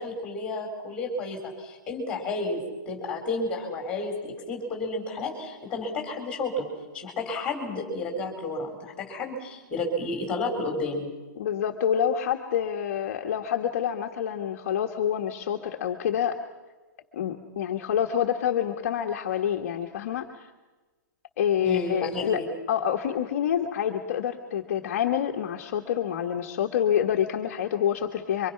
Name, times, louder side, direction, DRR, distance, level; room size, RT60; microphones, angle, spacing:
voice 1, 0.0-6.7 6.9-11.1 21.6-22.4, left 2 dB, 10° left, 2 dB, 4.0 m, -31 dB
voice 2, 11.4-16.4 17.1-20.5 21.4-22.4 22.7-28.5, left 9 dB, 40° left, 3 dB, 1.4 m, -27 dB
25.5 x 24.5 x 5.8 m, 1.2 s
hypercardioid pair, 180°, 11 cm